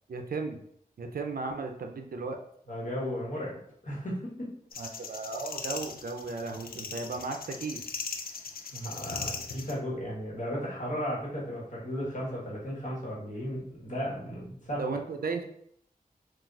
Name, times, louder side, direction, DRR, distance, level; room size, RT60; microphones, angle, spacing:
voice 1, 0.1-0.6 1.0-2.4 4.8-7.8 14.8-15.4, right 4 dB, 75° right, 4 dB, 0.4 m, -35 dB
voice 2, 2.7-3.6 3.8-4.5 8.7-14.8, equal, 55° left, -5 dB, 1.2 m, -35 dB
sound 1, 4.7-9.7, left 5 dB, 75° left, 0.4 m, -39 dB
3.9 x 2.4 x 2.3 m, 0.66 s
wide cardioid pair, 100°, 15 cm